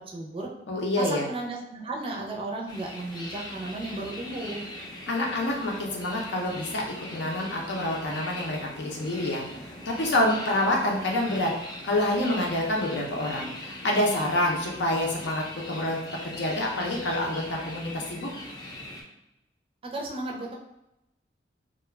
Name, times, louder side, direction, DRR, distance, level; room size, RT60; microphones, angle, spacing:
voice 1, 0.1-0.5 1.0-4.7 19.8-20.6, right 2 dB, 30° right, -1 dB, 0.4 m, -34 dB
voice 2, 0.7-1.3 5.1-9.4 9.9-16.0 16.2-18.3, left 1 dB, 80° left, -1 dB, 0.6 m, -27 dB
sound 1, 2.7-19.0, left 1 dB, 25° left, 0.4 m, -41 dB
2.3 x 2.2 x 3.2 m, 0.90 s
head